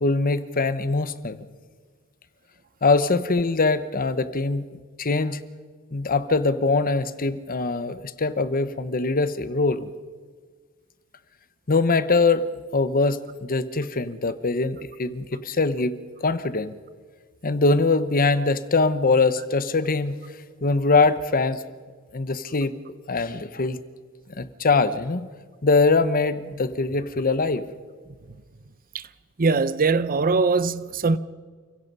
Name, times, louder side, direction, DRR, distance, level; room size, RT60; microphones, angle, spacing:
voice 1, 0.0-1.4 2.8-5.4 5.9-9.9 11.7-12.5 12.7-16.7 17.4-20.2 20.6-21.6 22.1-22.8 23.1-23.8 24.4-25.3 25.6-27.6, left 3 dB, 40° left, 0.9 m, -22 dB
voice 2, 29.4-31.2, right 4 dB, 40° right, 0.7 m, -21 dB
29.5 x 16.5 x 5.4 m
head